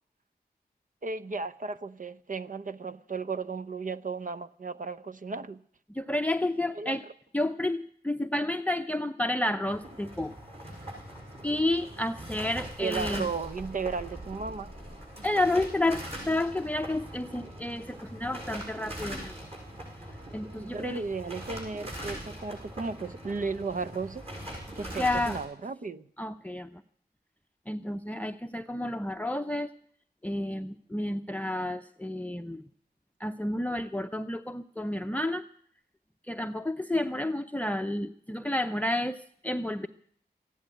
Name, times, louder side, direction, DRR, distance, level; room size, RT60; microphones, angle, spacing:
voice 1, 1.0-5.6 6.7-7.0 12.8-14.7 20.6-24.2 24.8-26.0, right 4 dB, 50° right, 0.7 m, -35 dB
voice 2, 5.9-7.0 7.3-10.3 11.4-13.3 15.2-19.3 20.3-21.1 25.0-25.4 26.2-26.8 27.7-29.7 30.2-32.6 33.2-35.5 36.3-39.9, left 1 dB, 10° left, 0.7 m, -30 dB
sound 1, 9.7-25.4, right 1 dB, 35° right, 6.6 m, -41 dB
15.0 x 10.5 x 8.9 m
cardioid pair, 55°, 17 cm